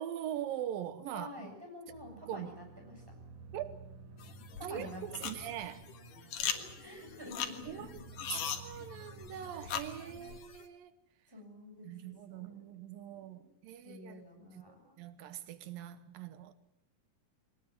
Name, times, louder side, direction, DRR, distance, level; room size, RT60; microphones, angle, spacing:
voice 1, 0.0-1.5 2.3-2.5 3.5-3.7 4.6-5.8 7.7-8.0 8.6-10.9 11.8-14.3 14.5-16.5, right 11 dB, 90° right, 2.9 m, -42 dB
voice 2, 1.1-3.0 4.6-5.3 6.5-8.0 11.3-12.6 13.4-13.5 13.9-15.0, left 1 dB, 5° right, 6.9 m, -49 dB
sound 1, 1.9-10.4, right 3 dB, 65° right, 3.3 m, -53 dB
sound 2, 4.2-10.6, left 8 dB, 70° left, 3.2 m, -41 dB
22.5 x 19.0 x 9.5 m
omnidirectional pair, 3.9 m